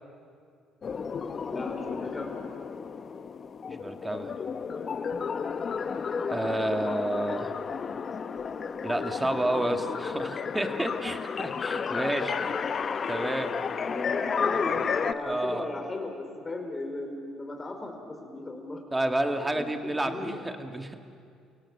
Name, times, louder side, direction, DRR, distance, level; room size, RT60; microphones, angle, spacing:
sound 1, 0.8-15.1, left 6 dB, 45° left, 0.9 m, -32 dB
voice 1, 1.5-2.4 13.8-18.8 19.4-20.4, left 2 dB, 25° left, 3 dB, 4.7 m, -36 dB
voice 2, 3.7-4.3 6.3-7.5 8.8-12.5 13.1-13.6 15.3-15.7 18.9-20.9, right 1 dB, 15° right, 5 dB, 2.1 m, -30 dB
29.0 x 18.0 x 7.5 m, 2.3 s
supercardioid pair, 70°, 0 cm